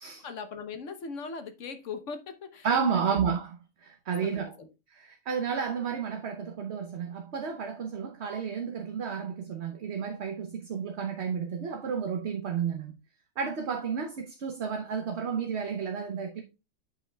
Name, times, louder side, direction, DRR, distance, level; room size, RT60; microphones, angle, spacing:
voice 1, 0.2-2.7 2.9-3.1 4.2-4.7, left 5 dB, 55° left, 1.2 m, -39 dB
voice 2, 2.6-3.5 3.8-4.5 4.9-13.0 13.4-16.4, right 6 dB, 50° right, 1.0 m, -31 dB
9.5 x 5.7 x 2.3 m
omnidirectional pair, 1.6 m